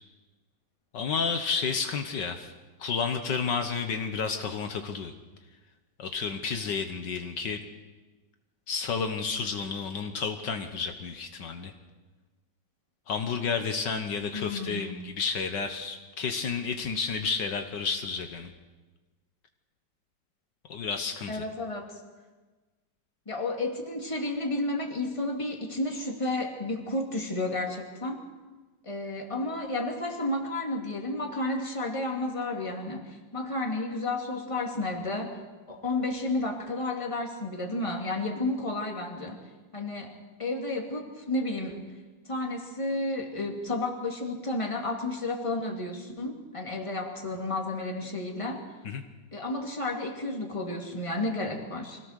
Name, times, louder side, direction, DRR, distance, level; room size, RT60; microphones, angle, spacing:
voice 1, 0.9-2.5 2.8-5.1 6.0-7.6 8.7-11.7 13.1-18.5 20.7-21.4 48.8-49.0, left 5 dB, 70° left, 6 dB, 1.8 m, -31 dB
voice 2, 14.3-15.0 21.3-22.0 23.3-28.2 28.8-35.4 35.7-39.4 39.7-41.9 42.2-48.7 49.3-52.0, left 2 dB, 15° left, 2 dB, 2.3 m, -32 dB
24.5 x 16.5 x 6.5 m, 1.3 s
omnidirectional pair, 2.0 m